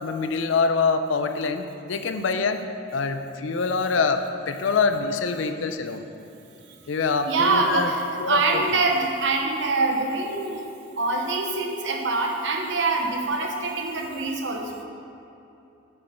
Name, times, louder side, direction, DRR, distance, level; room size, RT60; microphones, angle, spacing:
voice 1, 0.0-2.6 2.9-6.0 6.9-7.9 8.2-8.6, left 4 dB, 85° left, 8 dB, 0.5 m, -25 dB
voice 2, 7.2-10.7 11.0-14.7, right 3 dB, 70° right, 1 dB, 0.9 m, -24 dB
7.2 x 5.4 x 6.5 m, 2.9 s
head